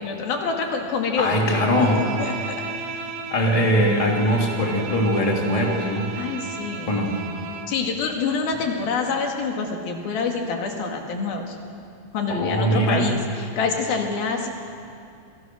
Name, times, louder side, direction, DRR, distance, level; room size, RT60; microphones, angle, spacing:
voice 1, 0.0-2.6 6.2-7.0 7.7-11.6 12.1-14.5, left 4 dB, 80° left, 2 dB, 4.0 m, -26 dB
voice 2, 1.1-2.0 3.3-6.1 6.9-7.2 12.3-13.1, equal, 10° left, -1 dB, 2.8 m, -21 dB
Bowed string instrument, 1.4-7.8, right 5 dB, 85° right, 4.0 m, -34 dB
28.5 x 22.0 x 6.4 m, 2.4 s
omnidirectional pair, 4.2 m